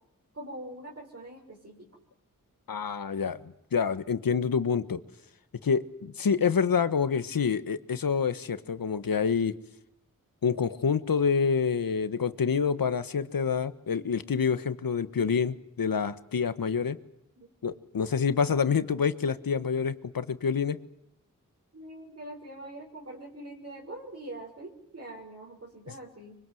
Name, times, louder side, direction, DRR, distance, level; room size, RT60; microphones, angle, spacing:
voice 1, 0.3-1.9 17.4-17.5 21.7-26.4, right 1 dB, 45° right, -1 dB, 6.2 m, -43 dB
voice 2, 2.7-5.0 5.6-9.5 10.4-17.0 17.6-20.8, left 6 dB, 85° left, 12 dB, 1.4 m, -27 dB
25.0 x 24.0 x 7.8 m, 0.79 s
wide cardioid pair, 75°, 34 cm